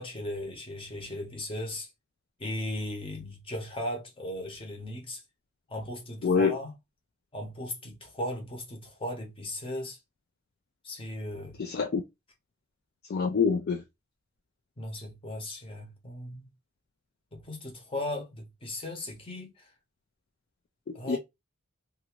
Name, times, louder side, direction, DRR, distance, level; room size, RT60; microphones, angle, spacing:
voice 1, 0.0-1.9 2.4-5.2 5.7-6.7 7.3-10.0 10.8-11.6 14.8-16.5 17.3-19.5 20.9-21.2, left 1 dB, 25° left, 0.9 m, -37 dB
voice 2, 11.6-12.0 13.1-13.8 20.9-21.2, left 5 dB, 45° left, 0.4 m, -26 dB
2.6 x 2.5 x 2.9 m
head